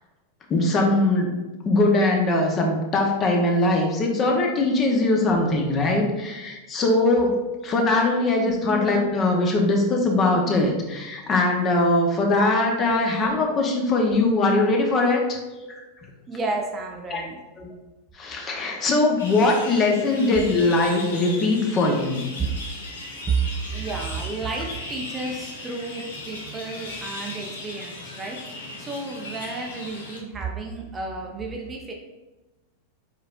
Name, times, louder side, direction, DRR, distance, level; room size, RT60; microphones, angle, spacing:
voice 1, 0.5-1.3 1.6-7.3 7.6-15.4 17.1-17.2 17.6-17.7 18.2-22.2, left 2 dB, 25° left, 1 dB, 0.9 m, -21 dB
voice 2, 8.6-8.9 15.5-15.7 16.3-17.4 20.3-20.4 22.4-22.5 23.3-23.4 23.7-31.9, right 4 dB, 20° right, 1 dB, 0.6 m, -31 dB
sound 1, 19.2-30.2, left 2 dB, 65° left, 1.0 m, -37 dB
4.8 x 4.3 x 2.5 m, 1.1 s
figure-of-eight pair, 90°, 0 cm